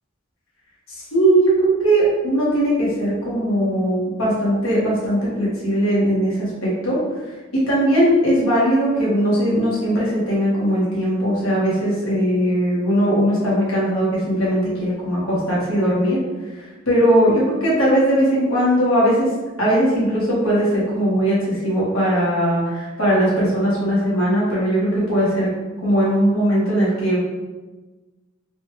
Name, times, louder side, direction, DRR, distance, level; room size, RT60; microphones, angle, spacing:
voice 1, 1.1-7.0 7.5-16.2 16.8-19.3 19.6-25.5 25.8-27.2, right 1 dB, 90° left, -7 dB, 1.5 m, -19 dB
4.0 x 2.4 x 3.1 m, 1.2 s
head